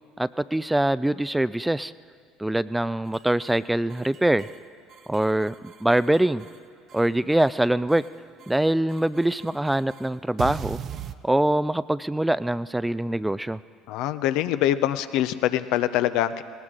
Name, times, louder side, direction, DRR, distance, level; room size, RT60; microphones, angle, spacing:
voice 1, 0.2-1.9 2.4-4.5 5.1-6.4 6.9-8.0 8.5-10.8 11.2-13.6, right 1 dB, 5° right, 16 dB, 0.3 m, -23 dB
sound 1, 3.1-3.6 3.9-4.6 4.9-6.6 6.9-7.6 7.9-8.6 8.9-11.2, right 9 dB, 50° right, 0.6 m, -39 dB
voice 2, 13.9-16.4, left 12 dB, 65° left, 12 dB, 0.6 m, -24 dB
19.0 x 18.5 x 3.8 m, 2.2 s
hypercardioid pair, 70°, 0 cm